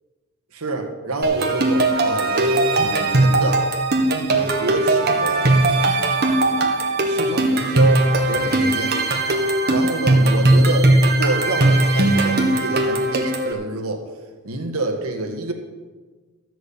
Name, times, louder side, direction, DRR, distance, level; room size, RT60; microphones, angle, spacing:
voice 1, 0.5-3.7 4.1-5.5 7.0-9.0 9.7-14.0 14.4-15.5, right 2 dB, 90° right, 4 dB, 1.6 m, -27 dB
sound 1, 1.2-13.5, right 2 dB, 50° right, 1.6 m, -19 dB
13.0 x 6.3 x 8.6 m, 1.4 s
head